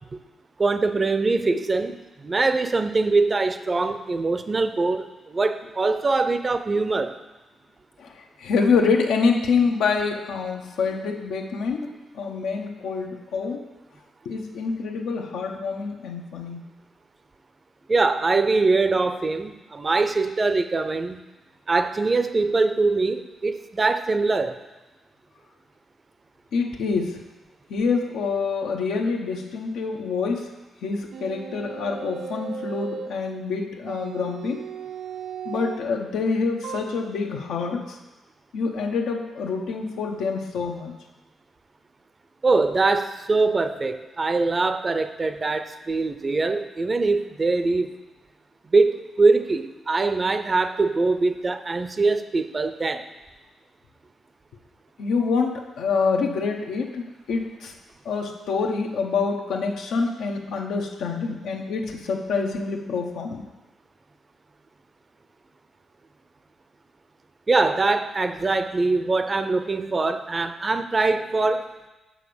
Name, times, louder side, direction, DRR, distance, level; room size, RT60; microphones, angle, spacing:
voice 1, 0.6-7.2 17.9-21.2 21.7-24.6 42.4-47.9 48.7-53.0 67.5-71.7, right 3 dB, 30° right, 10 dB, 0.5 m, -23 dB
voice 2, 8.0-13.7 14.2-16.6 26.5-27.2 27.7-30.5 30.8-34.7 35.4-38.0 38.5-41.0 55.0-57.7 58.0-63.5, left 4 dB, 85° left, 3 dB, 0.9 m, -26 dB
sound 1, 31.1-33.2 33.9-35.9 36.6-36.8, right 7 dB, 85° right, 0.6 m, -36 dB
6.2 x 5.2 x 6.9 m, 1.1 s
cardioid pair, 95°, 0 cm